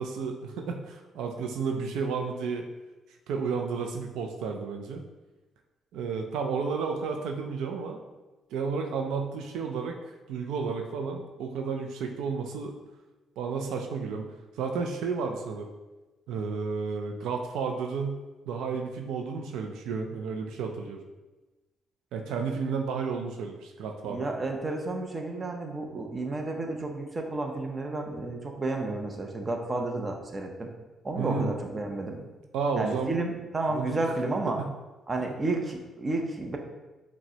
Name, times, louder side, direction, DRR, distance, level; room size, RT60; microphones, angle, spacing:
voice 1, 0.0-2.7 3.3-5.0 5.9-8.0 8.5-10.0 10.3-12.8 13.4-14.3 14.6-15.7 16.3-18.2 18.5-21.0 22.1-24.3 31.2-31.5 32.5-33.2 33.7-34.2 34.6-34.7 35.2-35.3, right 5 dB, 85° right, 3 dB, 0.3 m, -32 dB
voice 2, 24.0-30.7 31.0-32.3 32.8-34.6 35.1-36.6, right 2 dB, 30° right, 2 dB, 0.6 m, -31 dB
5.8 x 2.1 x 2.8 m, 1.1 s
cardioid pair, 90°, 0 cm